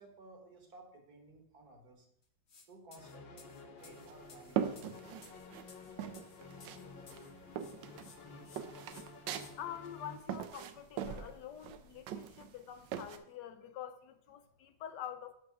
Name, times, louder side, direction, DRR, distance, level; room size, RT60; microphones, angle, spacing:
voice 1, 0.0-2.1 2.7-5.0, right 2 dB, 60° right, 1.9 m, -56 dB
sound 1, 2.5-2.7 2.9-7.3 7.6-8.2 8.4-8.6 8.9-9.5, left 5 dB, 45° left, 1.0 m, -58 dB
sound 2, 2.9-10.2, left 4 dB, 90° left, 1.6 m, -52 dB
sound 3, 3.8-5.7 6.0-6.8 7.1-13.2, right 9 dB, 80° right, 1.3 m, -40 dB
voice 2, 9.6-15.3, left 10 dB, 75° left, 1.2 m, -46 dB
6.2 x 6.1 x 5.9 m
omnidirectional pair, 2.0 m